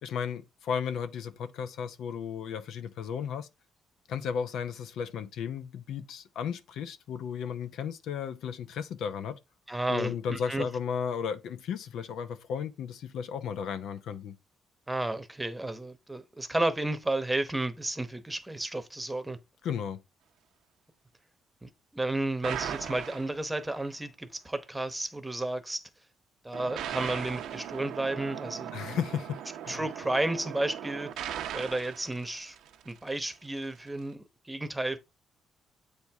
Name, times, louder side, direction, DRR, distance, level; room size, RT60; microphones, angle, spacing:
voice 1, 0.0-3.5 4.1-9.4 9.9-14.4 19.6-20.0 28.7-29.8, left 7 dB, 80° left, 0.7 m, -34 dB
voice 2, 9.7-10.7 14.9-19.4 21.6-25.9 26.4-28.7 29.7-32.6 32.8-35.0, right 2 dB, 10° right, 1.0 m, -32 dB
sound 1, 22.4-23.8 26.5-33.1, right 10 dB, 85° right, 0.8 m, -39 dB
8.2 x 4.6 x 3.4 m
cardioid pair, 90°, 0 cm